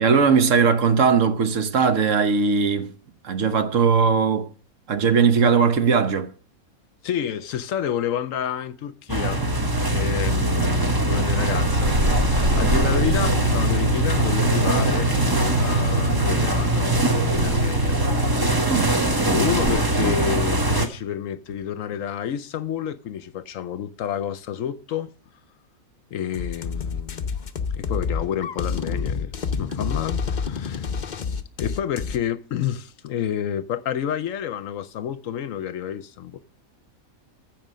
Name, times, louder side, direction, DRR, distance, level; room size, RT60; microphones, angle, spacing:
voice 1, 0.0-2.9 3.2-4.5 4.9-6.3 18.7-19.0, right 5 dB, 65° right, 1.3 m, -19 dB
voice 2, 7.0-9.4 9.8-15.1 15.6-16.9 17.2-18.4 19.2-25.1 26.1-27.3 27.7-30.9 31.6-36.4, left 9 dB, 70° left, 1.0 m, -29 dB
sound 1, 9.1-20.9, right 1 dB, 15° right, 1.0 m, -21 dB
sound 2, 11.3-19.7, equal, 40° right, 1.9 m, -30 dB
sound 3, 26.3-32.2, left 5 dB, 45° left, 0.7 m, -28 dB
14.5 x 5.2 x 6.3 m
omnidirectional pair, 1.5 m